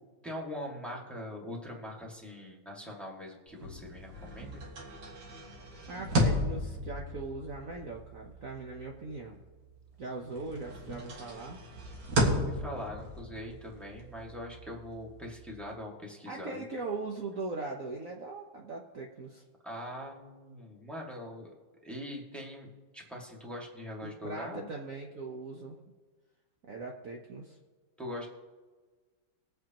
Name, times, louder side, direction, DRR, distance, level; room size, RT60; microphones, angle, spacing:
voice 1, 0.2-4.6 12.3-16.6 19.6-21.5 21.8-22.7 22.9-24.7 28.0-28.3, left 1 dB, ahead, -2 dB, 1.8 m, -42 dB
sound 1, 3.5-10.0 10.3-15.7, equal, 75° right, 2.4 m, -35 dB
voice 2, 5.9-9.4 10.0-11.6 16.3-19.4 24.0-25.8 26.7-27.6, right 3 dB, 55° right, 0 dB, 1.2 m, -40 dB
21.5 x 8.0 x 2.9 m, 1.4 s
omnidirectional pair, 2.0 m